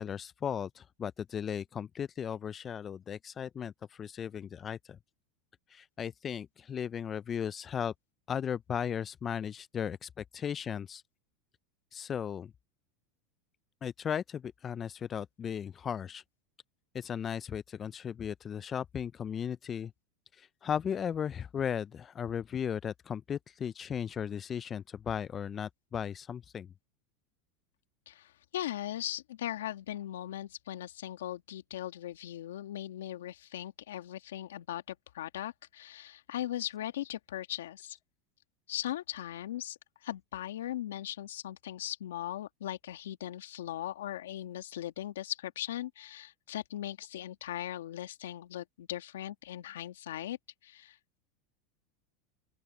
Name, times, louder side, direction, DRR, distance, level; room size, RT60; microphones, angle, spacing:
voice 1, 0.0-5.0 5.7-7.9 8.3-11.0 11.9-12.5 13.8-16.2 16.9-19.9 20.3-26.7, left 8 dB, 30° left, 0.4 m, -36 dB
voice 2, 28.1-38.0 38.7-50.4 50.6-51.2, left 12 dB, 90° left, 1.9 m, -39 dB
open air
supercardioid pair, 110°, 0 cm